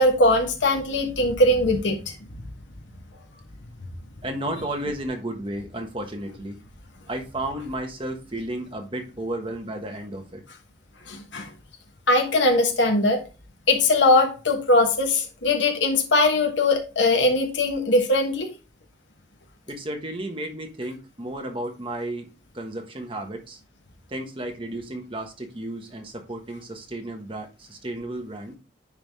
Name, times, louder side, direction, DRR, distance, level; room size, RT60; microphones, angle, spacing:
voice 1, 0.0-2.0 11.1-11.5 12.1-13.2 13.7-18.5, left 2 dB, 80° left, 4 dB, 1.2 m, -20 dB
voice 2, 4.2-6.6 7.1-10.4 19.7-22.3 22.5-23.6 24.1-28.6, right 1 dB, 30° right, 3 dB, 1.3 m, -33 dB
9.8 x 3.5 x 3.4 m, 0.32 s
head